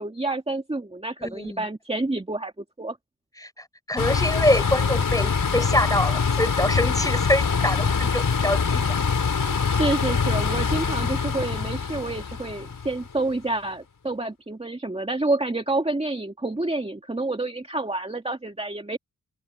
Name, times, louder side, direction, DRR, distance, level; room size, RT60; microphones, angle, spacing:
voice 1, 0.0-2.5 2.8-3.0 9.4-19.0, right 2 dB, 20° right, 2.2 m, -28 dB
voice 2, 1.2-1.7 3.4-3.5 3.9-8.8, left 1 dB, 10° left, 5.3 m, -25 dB
sound 1, 4.0-13.2, left 5 dB, 75° left, 6.2 m, -24 dB
wide cardioid pair, 100°, 33 cm